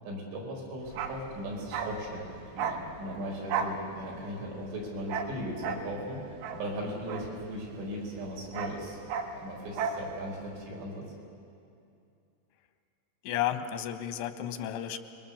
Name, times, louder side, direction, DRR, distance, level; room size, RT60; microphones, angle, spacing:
voice 1, 0.1-2.2 2.6-9.0 9.3-11.0, equal, 90° right, -2 dB, 7.1 m, -38 dB
Bark, 0.9-7.9 8.2-10.1 10.3-10.5, right 6 dB, 65° right, 2.7 m, -36 dB
voice 2, 13.2-15.0, left 11 dB, 90° left, 9 dB, 3.5 m, -32 dB
27.0 x 22.5 x 7.1 m, 2.5 s
omnidirectional pair, 5.3 m